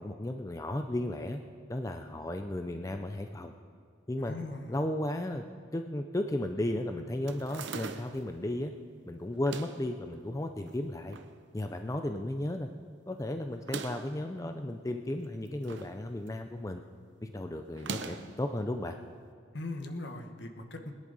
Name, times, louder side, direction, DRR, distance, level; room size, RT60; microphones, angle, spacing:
voice 1, 0.0-1.4 1.7-3.5 4.1-4.4 4.7-5.4 5.7-8.7 9.1-11.2 11.5-12.7 13.1-16.8 17.2-19.0, left 1 dB, 15° left, 6 dB, 0.4 m, -34 dB
voice 2, 4.2-4.7 19.5-20.9, left 2 dB, 65° left, 5 dB, 1.3 m, -39 dB
sound 1, 7.3-8.3 9.3-9.9 10.7-11.3 11.7-11.8 12.0-12.1 13.5-14.2 15.2-16.0 16.3-16.6 17.7-18.4, right 4 dB, 70° right, 0.7 m, -41 dB
21.0 x 10.5 x 4.1 m, 2.1 s
head